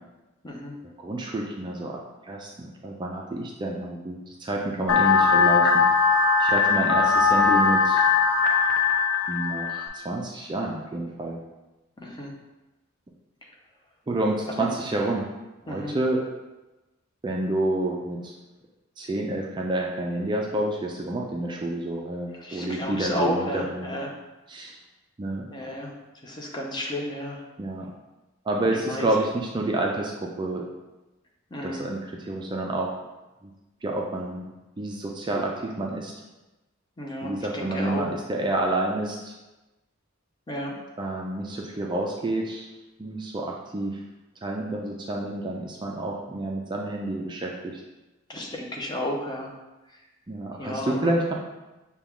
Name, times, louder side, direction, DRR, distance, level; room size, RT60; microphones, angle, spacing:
voice 1, 0.4-0.7 12.0-12.3 14.6-14.7 15.7-15.9 22.4-24.1 25.5-25.9 26.2-27.4 28.9-29.1 31.5-31.8 37.0-38.0 40.5-40.8 48.3-49.5 50.6-51.1, left 1 dB, 20° left, -1 dB, 0.6 m, -32 dB
voice 2, 1.0-5.8 6.4-8.0 9.3-11.4 14.1-15.3 15.6-16.2 17.2-18.3 19.0-24.0 24.5-24.8 25.2-25.5 27.6-27.9 28.5-30.7 31.6-32.9 33.8-34.5 34.8-36.1 37.2-39.3 41.0-42.7 43.0-44.0 44.4-47.8 50.3-51.3, right 2 dB, 20° right, -1 dB, 0.3 m, -29 dB
sound 1, 4.9-9.9, left 5 dB, 80° left, 0.5 m, -20 dB
5.9 x 2.3 x 3.5 m, 1.1 s
head